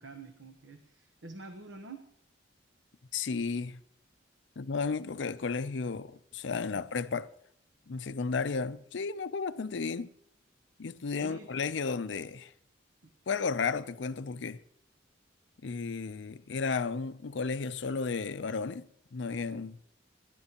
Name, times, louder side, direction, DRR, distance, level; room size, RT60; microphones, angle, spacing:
voice 1, 0.0-2.0 11.1-11.5 13.0-13.1, right 2 dB, 85° right, 1.1 m, -47 dB
voice 2, 3.1-3.8 4.6-7.3 7.9-10.1 10.8-12.5 13.3-14.6 15.6-18.9 19.1-19.8, left 4 dB, 70° left, 0.5 m, -33 dB
27.5 x 11.5 x 2.9 m
head